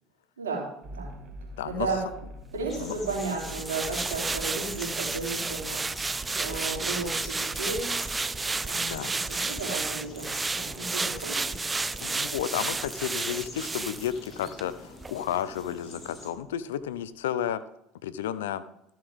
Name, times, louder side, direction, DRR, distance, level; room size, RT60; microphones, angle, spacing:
voice 1, 0.4-1.1 1.6-2.0 2.5-7.9 8.6-8.9 9.3-11.6, right 3 dB, 90° right, -2 dB, 3.1 m, -34 dB
sound 1, 0.8-17.1, equal, 55° right, 1.9 m, -49 dB
voice 2, 1.6-1.9 2.8-2.9 8.8-9.1 12.0-17.6 18.0-18.6, left 10 dB, 80° left, 15 dB, 0.6 m, -32 dB
sound 2, 2.7-16.3, left 2 dB, 35° left, 3.5 m, -45 dB
sound 3, 3.1-14.7 15.0-15.2, right 3 dB, 20° right, 0.3 m, -32 dB
13.5 x 7.3 x 3.6 m, 0.81 s
hypercardioid pair, 70°, 0 cm